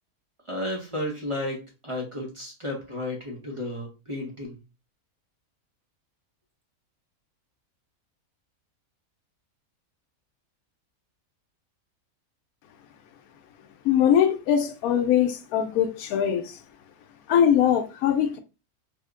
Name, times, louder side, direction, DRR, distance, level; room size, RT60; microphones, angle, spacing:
voice 1, 0.5-4.6, left 1 dB, 30° right, 0.7 m, -33 dB
voice 2, 13.8-16.4 17.3-18.4, left 9 dB, 80° left, 1.1 m, -21 dB
3.5 x 2.1 x 3.5 m
omnidirectional pair, 1.5 m